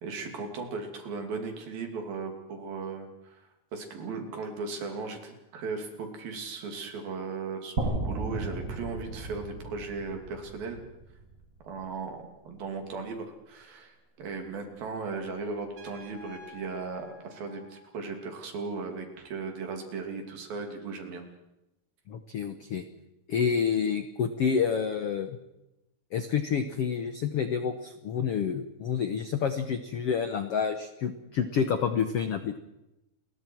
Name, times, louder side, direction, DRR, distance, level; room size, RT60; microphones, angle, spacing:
voice 1, 0.0-3.4 3.7-10.8 11.6-21.2, right 4 dB, 70° right, 4 dB, 4.5 m, -37 dB
sound 1, 7.8-11.8, right 2 dB, 25° right, 2.1 m, -35 dB
Trumpet, 15.8-18.4, left 2 dB, 85° right, 6.0 m, -51 dB
voice 2, 22.1-22.8 23.3-25.4 26.1-32.6, left 7 dB, 80° left, 8 dB, 1.3 m, -28 dB
29.5 x 22.0 x 4.6 m, 0.92 s
omnidirectional pair, 4.4 m